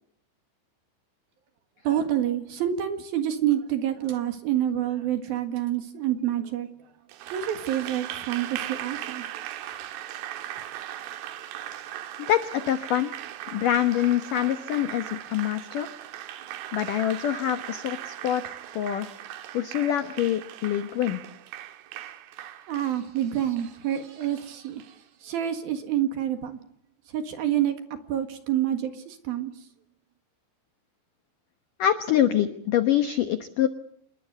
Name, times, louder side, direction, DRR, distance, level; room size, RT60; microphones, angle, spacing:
voice 1, 1.8-6.7 7.3-9.2 22.7-26.6 27.1-27.7 28.1-29.5, right 11 dB, 60° right, 8 dB, 3.1 m, -27 dB
Applause, 7.1-24.9, right 12 dB, 85° right, 4.0 m, -39 dB
voice 2, 12.3-13.1 13.5-15.9 16.7-19.1 19.5-21.2 31.8-33.7, left 11 dB, 80° left, 9 dB, 1.9 m, -25 dB
27.5 x 21.5 x 8.1 m, 0.67 s
omnidirectional pair, 5.5 m